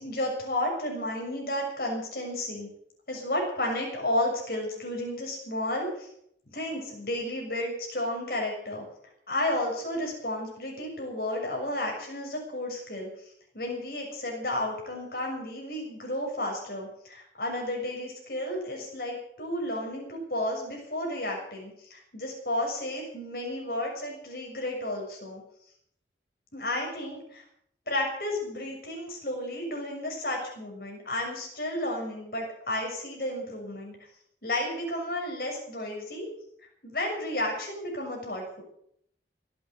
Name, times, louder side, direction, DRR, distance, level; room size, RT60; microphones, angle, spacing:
voice 1, 0.0-2.7 3.1-6.1 6.5-8.8 9.3-13.1 13.5-25.4 26.5-27.4 27.9-34.0 34.4-36.3 36.8-38.6, left 1 dB, 55° left, 0 dB, 6.7 m, -32 dB
18.5 x 9.1 x 8.2 m, 0.70 s
head